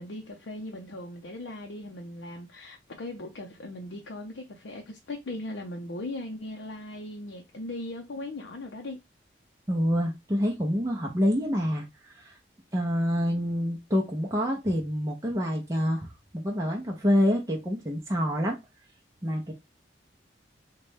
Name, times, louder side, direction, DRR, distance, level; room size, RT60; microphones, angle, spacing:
voice 1, 0.0-9.0, left 1 dB, 70° left, 0.6 m, -38 dB
voice 2, 9.7-11.9 12.1-12.4 12.7-16.1 16.3-18.6 19.2-19.5, equal, 15° right, 0.5 m, -27 dB
4.0 x 2.2 x 3.2 m
head